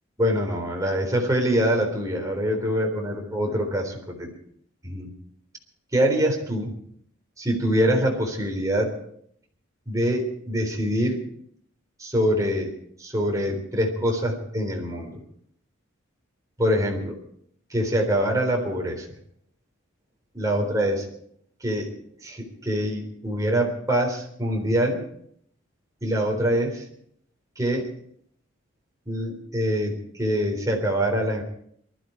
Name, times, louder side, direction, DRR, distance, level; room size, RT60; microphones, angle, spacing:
voice 1, 0.2-4.3 4.8-5.1 5.9-6.8 7.4-9.0 9.9-11.2 12.0-12.7 13.0-15.2 16.6-17.2 17.7-19.1 20.3-21.1 21.6-21.9 22.2-25.1 26.0-26.8 27.6-27.9 29.1-31.4, equal, 15° right, 1 dB, 3.8 m, -24 dB
23.0 x 13.0 x 4.6 m, 0.65 s
head